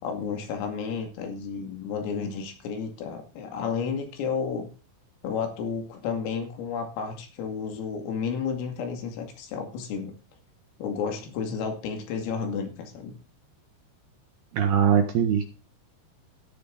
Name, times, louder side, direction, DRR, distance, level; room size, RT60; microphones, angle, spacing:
voice 1, 0.0-4.7 5.2-10.1 10.8-13.2, left 6 dB, 85° left, 4 dB, 5.1 m, -32 dB
voice 2, 14.5-15.4, right 8 dB, 70° right, 5 dB, 2.5 m, -21 dB
13.5 x 10.5 x 3.9 m, 0.35 s
omnidirectional pair, 5.8 m